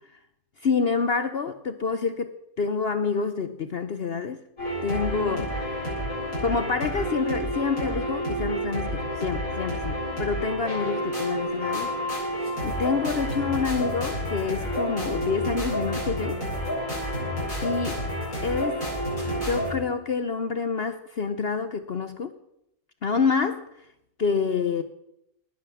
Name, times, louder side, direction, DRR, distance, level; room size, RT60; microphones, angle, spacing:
voice 1, 0.6-4.4 4.8-5.7 6.4-12.3 12.6-16.4 17.6-18.0 18.4-18.9 19.3-22.3 23.0-23.7 24.2-24.8, left 5 dB, 50° left, 10 dB, 0.9 m, -27 dB
sound 1, 4.6-19.7, equal, 70° left, 8.3 m, -29 dB
19.0 x 9.3 x 7.0 m, 0.82 s
omnidirectional pair, 1.5 m